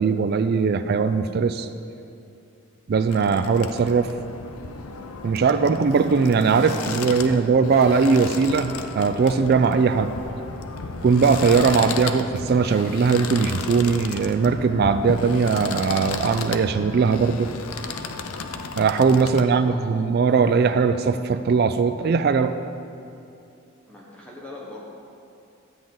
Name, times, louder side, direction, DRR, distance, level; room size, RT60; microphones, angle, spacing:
voice 1, 0.0-1.7 2.9-4.1 5.2-10.1 11.0-17.5 18.8-22.5, right 5 dB, 45° right, 10 dB, 0.3 m, -20 dB
sound 1, 3.1-19.4, left 4 dB, 80° left, 0.6 m, -34 dB
voice 2, 6.8-7.4 19.3-19.9 23.9-24.8, left 1 dB, 5° left, -5 dB, 1.2 m, -42 dB
12.5 x 8.7 x 3.9 m, 2.7 s
head